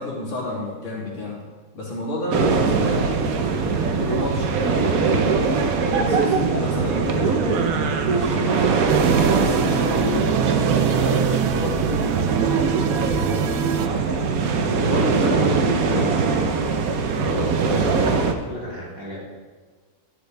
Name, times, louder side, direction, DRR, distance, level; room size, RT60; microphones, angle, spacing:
voice 1, 0.0-1.4 1.7-3.1 3.9-5.5 5.8-8.8 9.3-10.3 10.9-12.1 14.6-15.4 15.7-16.2, left 2 dB, 75° left, -6 dB, 3.5 m, -30 dB
sound 1, 2.3-18.3, right 5 dB, 60° right, 1.0 m, -21 dB
sound 2, 8.9-13.9, right 10 dB, 90° right, 1.4 m, -26 dB
voice 2, 15.2-15.6 17.2-18.1 18.5-19.2, equal, 10° right, -8 dB, 3.3 m, -31 dB
11.5 x 9.4 x 3.4 m, 1.5 s
omnidirectional pair, 2.1 m